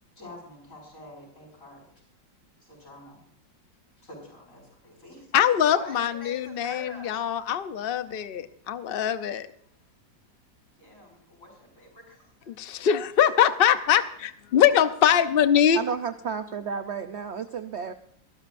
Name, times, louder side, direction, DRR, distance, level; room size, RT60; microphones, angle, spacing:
voice 1, 0.2-1.8 2.6-3.2 4.0-5.4 5.7-7.2 10.8-12.6, left 1 dB, 45° left, 0 dB, 6.3 m, -46 dB
voice 2, 5.3-9.5 12.5-15.8, left 9 dB, 80° left, 10 dB, 0.5 m, -22 dB
voice 3, 15.7-17.9, right 6 dB, 60° right, 9 dB, 0.7 m, -32 dB
23.0 x 13.0 x 2.6 m, 0.66 s
omnidirectional pair, 2.0 m